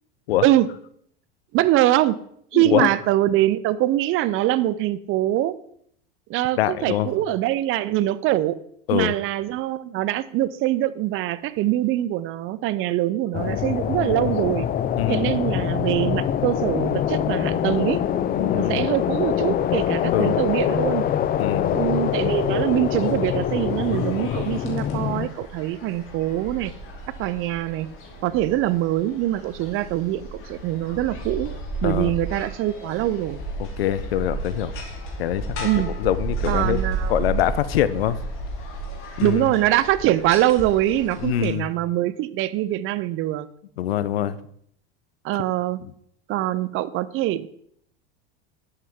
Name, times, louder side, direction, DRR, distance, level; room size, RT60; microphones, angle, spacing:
voice 1, 1.5-2.2 2.5-5.6 6.3-8.6 8.9-14.7 15.1-18.0 18.5-21.0 21.7-26.7 27.2-27.9 28.2-31.5 31.8-33.4 35.6-35.9 36.5-37.3 39.2-43.5 45.2-45.8 46.3-47.5, right 14 dB, 45° right, 17 dB, 0.6 m, -23 dB
voice 2, 2.5-2.9 6.6-7.1 8.9-9.1 15.0-15.4 18.4-18.9 20.1-20.4 21.4-21.8 31.8-32.1 33.6-34.7 35.2-35.7 36.0-36.8 37.1-38.2 39.2-39.4 41.2-41.7 43.8-44.4 45.8-45.9, left 12 dB, 85° left, 16 dB, 0.6 m, -24 dB
sound 1, 13.3-25.3, left 10 dB, 30° left, 0.5 m, -24 dB
sound 2, 21.6-41.4, right 2 dB, 45° left, 2.8 m, -34 dB
10.5 x 8.0 x 3.6 m, 0.68 s
hypercardioid pair, 95°, 29 cm